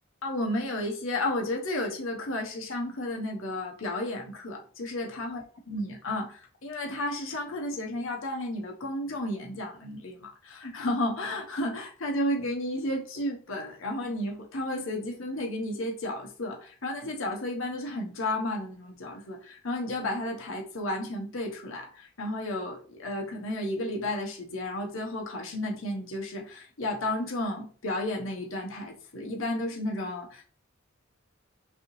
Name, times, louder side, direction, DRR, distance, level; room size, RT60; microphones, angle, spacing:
voice 1, 0.2-30.4, left 1 dB, 80° left, 1.1 m, -32 dB
5.4 x 2.9 x 3.1 m
head